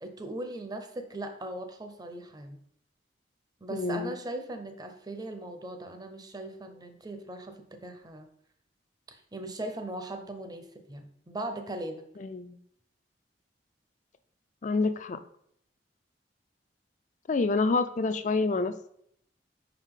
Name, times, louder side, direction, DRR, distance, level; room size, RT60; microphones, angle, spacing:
voice 1, 0.0-2.6 3.6-8.3 9.1-12.0, right 1 dB, 25° right, 7 dB, 0.7 m, -39 dB
voice 2, 3.7-4.1 12.2-12.6 14.6-15.2 17.3-18.9, left 3 dB, 45° left, 11 dB, 0.4 m, -28 dB
5.5 x 4.9 x 3.7 m, 0.69 s
head